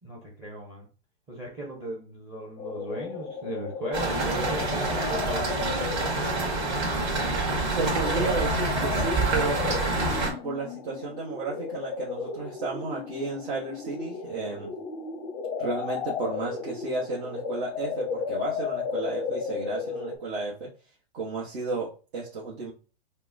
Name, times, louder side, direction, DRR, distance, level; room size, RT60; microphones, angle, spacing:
voice 1, 0.0-0.9 1.3-6.2, right 1 dB, 15° right, -1 dB, 0.8 m, -37 dB
sound 1, 2.6-20.2, left 5 dB, 25° left, 0.5 m, -35 dB
sound 2, 3.9-10.3, right 2 dB, 35° right, 1.9 m, -27 dB
voice 2, 7.6-9.6 10.4-14.7 15.6-20.7 21.1-22.7, right 3 dB, 55° right, -5 dB, 1.2 m, -33 dB
5.5 x 2.2 x 2.7 m, 0.37 s
hypercardioid pair, 145°, 31 cm